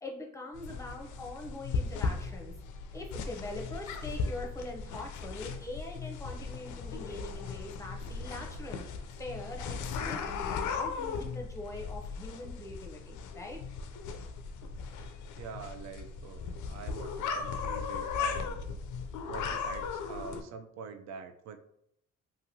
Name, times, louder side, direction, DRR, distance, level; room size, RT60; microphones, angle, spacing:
voice 1, 0.0-2.5 2.8-8.8 9.2-13.6, left 2 dB, 10° left, 1 dB, 0.6 m, -43 dB
sound 1, 0.5-20.4, left 5 dB, 80° left, 0.4 m, -37 dB
voice 2, 15.4-18.7 19.3-21.6, right 6 dB, 65° right, 8 dB, 0.4 m, -45 dB
2.9 x 2.6 x 2.6 m, 0.74 s
cardioid pair, 90°, 30 cm